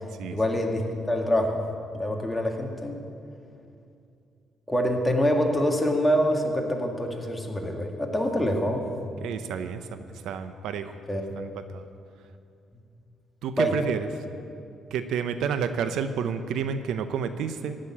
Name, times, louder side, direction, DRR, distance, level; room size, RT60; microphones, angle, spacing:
voice 1, 0.3-1.6 1.9-3.0 4.7-8.8 11.1-11.4 13.6-13.7, equal, 10° left, 1 dB, 2.0 m, -25 dB
voice 2, 9.2-10.9 11.4-11.8 13.4-14.1 14.9-17.8, right 7 dB, 80° right, 10 dB, 0.7 m, -30 dB
15.0 x 6.6 x 9.8 m, 2.5 s
cardioid pair, 90°, 0 cm